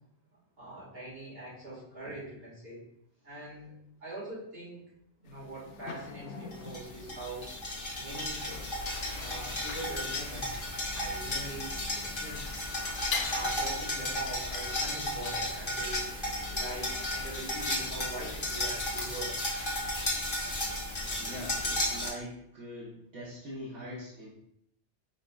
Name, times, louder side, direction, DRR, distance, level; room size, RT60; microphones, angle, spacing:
voice 1, 0.6-2.8 3.2-4.8 5.2-7.5 7.9-8.5 9.1-10.7 10.9-12.4 13.2-16.1 16.5-19.4, right 1 dB, 55° right, -7 dB, 2.2 m, -43 dB
sound 1, 5.2-19.2, left 5 dB, 85° left, 0.9 m, -45 dB
sound 2, 6.5-22.1, left 1 dB, 25° left, 0.9 m, -34 dB
voice 2, 21.2-24.3, equal, 75° right, -8 dB, 1.4 m, -42 dB
5.1 x 4.2 x 2.4 m, 0.75 s
omnidirectional pair, 1.2 m